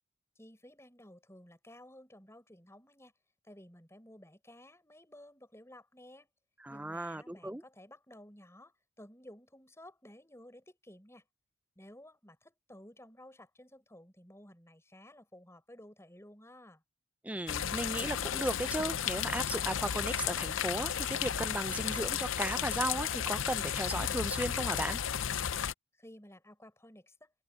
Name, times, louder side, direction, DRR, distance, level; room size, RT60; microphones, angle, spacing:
voice 1, 0.4-3.1 3.4-6.3 6.7-11.2 11.8-16.8 26.0-27.3, left 1 dB, 10° left, 7.1 m, -55 dB
voice 2, 6.6-7.6 17.2-25.0, right 1 dB, 5° right, 0.5 m, -36 dB
sound 1, 17.5-25.7, left 9 dB, 65° left, 0.6 m, -34 dB
head